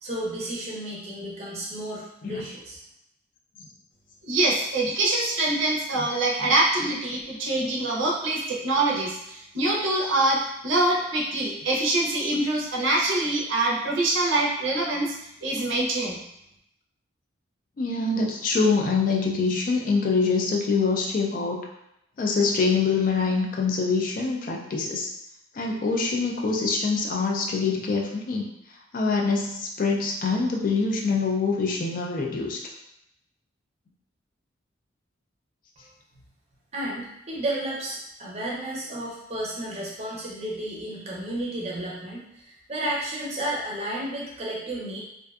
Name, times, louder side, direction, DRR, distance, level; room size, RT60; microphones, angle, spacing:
voice 1, 0.0-2.8 35.8-35.9 36.7-45.0, right 1 dB, 30° right, -4 dB, 0.6 m, -32 dB
voice 2, 4.2-15.1 15.4-16.2, right 2 dB, 80° right, -3 dB, 0.5 m, -24 dB
voice 3, 17.8-21.6 22.2-25.1 25.5-28.4 28.9-32.6, left 4 dB, 45° left, 0 dB, 0.3 m, -25 dB
2.5 x 2.2 x 2.3 m, 0.81 s
head